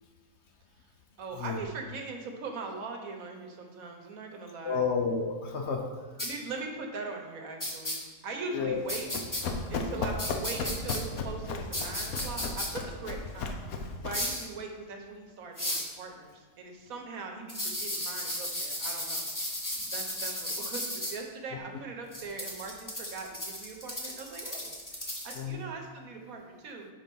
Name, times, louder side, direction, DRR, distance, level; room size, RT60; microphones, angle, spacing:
voice 1, 1.2-4.8 6.2-9.1 9.4-19.3 19.9-26.9, right 3 dB, 75° right, 3 dB, 1.3 m, -41 dB
voice 2, 4.6-5.9 8.5-8.8 9.7-10.0 25.4-25.6, left 5 dB, 60° left, 3 dB, 0.8 m, -31 dB
sound 1, 6.2-6.3 7.6-8.0 8.9-9.4 10.2-11.0 11.7-12.7 14.1-14.4 15.6-15.9 17.5-21.1 22.1-25.4, left 1 dB, 15° left, 0.9 m, -34 dB
Run, 8.8-14.3, left 3 dB, 80° left, 1.1 m, -35 dB
5.8 x 4.3 x 5.3 m, 1.4 s
omnidirectional pair, 1.5 m